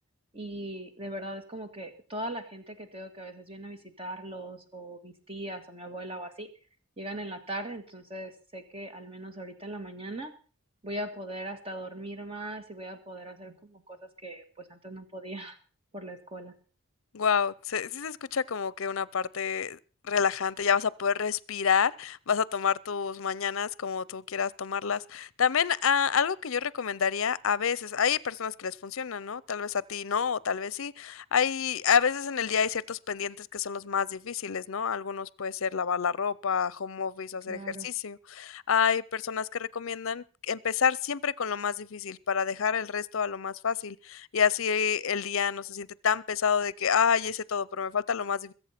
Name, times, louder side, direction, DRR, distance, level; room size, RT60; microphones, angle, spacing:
voice 1, 0.3-6.5 7.0-10.3 10.8-15.6 15.9-16.5 37.5-37.9, right 1 dB, 25° right, 2.0 m, -39 dB
voice 2, 17.1-19.8 20.0-48.5, left 7 dB, 65° left, 0.6 m, -28 dB
21.5 x 8.1 x 5.9 m
head